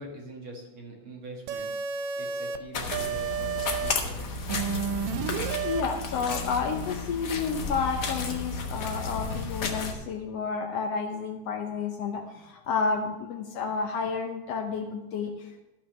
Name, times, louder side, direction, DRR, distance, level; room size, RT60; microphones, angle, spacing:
voice 1, 0.0-1.7 2.2-4.8, right 2 dB, 50° right, -1 dB, 2.5 m, -44 dB
sound 1, 1.5-2.6 2.9-3.9 4.5-5.8, right 6 dB, 80° right, 2.0 m, -31 dB
sound 2, 2.7-9.9, left 4 dB, 55° left, 1.2 m, -33 dB
voice 2, 5.6-15.6, left 5 dB, 70° left, 4 dB, 1.8 m, -31 dB
13.0 x 5.7 x 6.4 m, 0.99 s
omnidirectional pair, 3.3 m